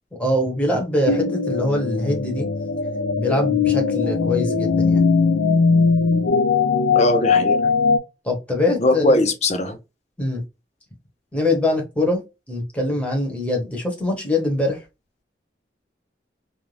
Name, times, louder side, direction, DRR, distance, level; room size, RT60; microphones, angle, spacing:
voice 1, 0.1-2.5 3.2-5.0 8.2-9.2 10.2-10.4 11.3-12.2 12.5-14.8, left 1 dB, 5° left, 0.9 m, -23 dB
sound 1, 1.1-8.0, left 4 dB, 90° left, 0.5 m, -20 dB
voice 2, 6.9-7.7 8.8-9.8, left 1 dB, 40° left, 0.5 m, -19 dB
2.5 x 2.2 x 3.1 m
head